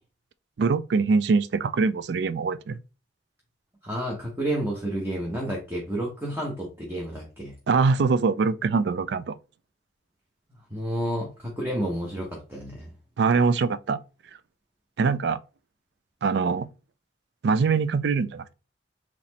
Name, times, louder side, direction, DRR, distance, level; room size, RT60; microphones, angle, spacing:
voice 1, 0.6-2.8 7.7-9.4 13.2-14.0 15.0-15.4 16.2-16.7 17.4-18.5, right 4 dB, 65° right, 0.4 m, -23 dB
voice 2, 3.8-7.5 10.7-12.9, right 1 dB, 10° right, 1.1 m, -30 dB
4.2 x 3.0 x 4.0 m
head